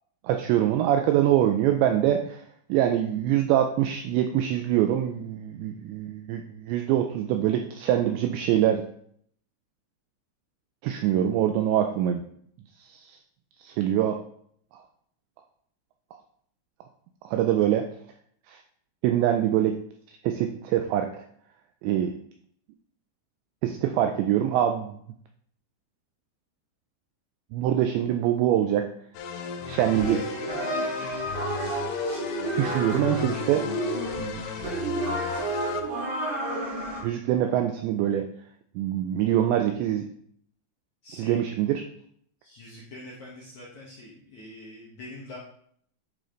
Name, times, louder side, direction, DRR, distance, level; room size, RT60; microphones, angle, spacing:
voice 1, 0.2-2.4 2.7-8.8 10.8-12.2 12.9-13.2 13.6-14.2 17.2-17.9 18.5-18.6 19.0-19.8 20.2-21.1 21.8-22.1 23.6-25.0 27.5-28.9 29.6-30.2 32.6-33.7 34.2-34.4 37.0-38.3 38.8-40.1 41.2-41.8, right 11 dB, 85° right, 6 dB, 2.6 m, -24 dB
sound 1, 29.1-35.8, left 7 dB, 85° left, 3.2 m, -35 dB
sound 2, 29.9-37.0, right 2 dB, 55° right, 4.2 m, -31 dB
voice 2, 41.0-41.4 42.4-45.4, left 1 dB, 70° left, -5 dB, 1.8 m, -44 dB
11.0 x 5.1 x 3.9 m, 0.65 s
omnidirectional pair, 5.7 m